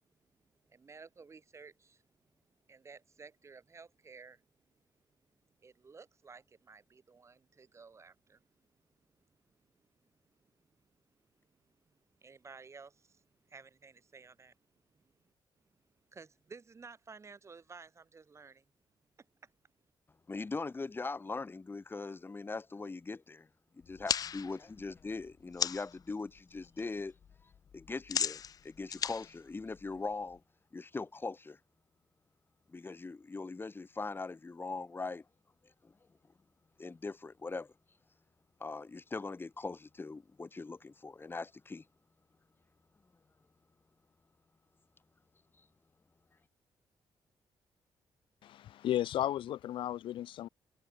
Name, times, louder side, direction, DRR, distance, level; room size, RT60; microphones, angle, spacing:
voice 1, 0.7-2.0 2.7-4.4 5.6-8.5 9.8-9.9 11.4-11.6 12.2-14.5 14.9-15.1 16.1-18.6 19.4-19.5, right 4 dB, 35° right, 6.6 m, -54 dB
voice 2, 20.3-23.5 23.7-27.2 27.4-30.4 30.7-31.6 32.7-35.2 35.8-35.9 36.8-37.7 38.6-41.8, left 3 dB, 25° left, 5.3 m, -41 dB
sound 1, 23.8-26.0 26.4-26.8 27.1-30.3, left 8 dB, 50° left, 0.4 m, -37 dB
voice 3, 48.4-50.5, left 12 dB, 85° left, 1.1 m, -34 dB
cardioid pair, 105°, 8 cm